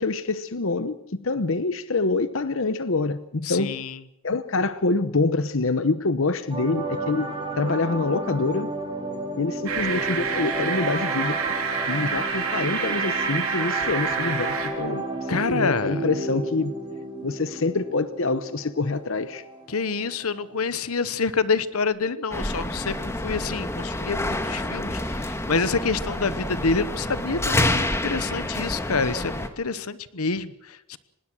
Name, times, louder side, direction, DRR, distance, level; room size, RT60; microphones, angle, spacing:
voice 1, 0.0-3.8 4.2-7.3 7.6-8.7 9.4-11.4 11.9-16.7 17.2-19.4, left 3 dB, 65° left, 0.9 m, -26 dB
voice 2, 3.4-4.0 15.3-16.0 19.7-31.0, left 4 dB, 90° left, 1.1 m, -27 dB
sound 1, 6.5-20.7 21.0-21.2, right 2 dB, 25° right, 5.4 m, -32 dB
sound 2, 9.7-14.7, right 6 dB, 80° right, 3.6 m, -28 dB
sound 3, 22.3-29.5, left 1 dB, 10° left, 1.7 m, -28 dB
25.0 x 20.0 x 6.3 m
head